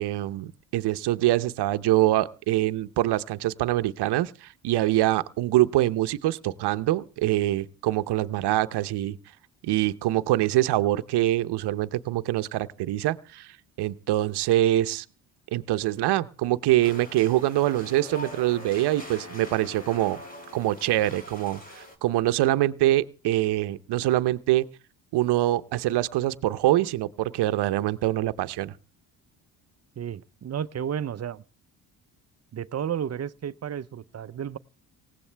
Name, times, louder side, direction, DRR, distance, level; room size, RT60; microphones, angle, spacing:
voice 1, 0.0-9.2 9.6-13.5 13.8-15.0 15.5-20.2 20.5-24.7 25.1-28.7, right 15 dB, 70° right, 0.9 m, -24 dB
Wind instrument woodwind instrument, 16.8-21.8, left 3 dB, 40° left, 3.4 m, -47 dB
sound 1, 16.8-22.0, left 1 dB, 20° left, 3.1 m, -45 dB
voice 2, 30.0-31.4 32.5-34.6, right 9 dB, 40° right, 0.7 m, -32 dB
19.0 x 16.5 x 3.4 m
supercardioid pair, 75°, 41 cm